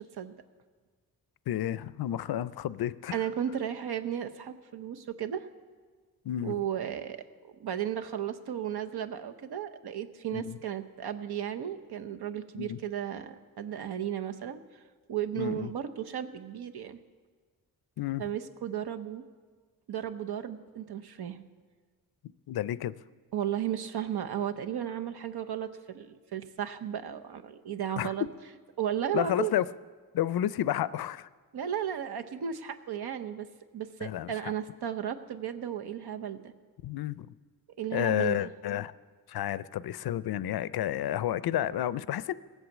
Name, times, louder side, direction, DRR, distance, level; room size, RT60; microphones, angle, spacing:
voice 1, 1.5-3.2 6.2-6.5 10.3-10.6 12.5-12.8 15.4-15.7 18.0-18.3 22.5-23.0 28.0-28.1 29.1-29.7 30.1-31.3 34.0-34.5 36.8-37.3 37.9-38.9 39.3-42.3, left 12 dB, 75° left, 17 dB, 0.5 m, -31 dB
voice 2, 3.1-5.5 6.4-7.2 7.6-14.6 15.1-17.0 18.2-19.2 19.9-21.4 23.3-28.2 28.8-29.5 31.5-33.5 33.7-36.5 37.8-38.5, right 9 dB, 85° right, 8 dB, 0.8 m, -34 dB
17.5 x 8.1 x 7.2 m, 1.5 s
wide cardioid pair, 115°, 38 cm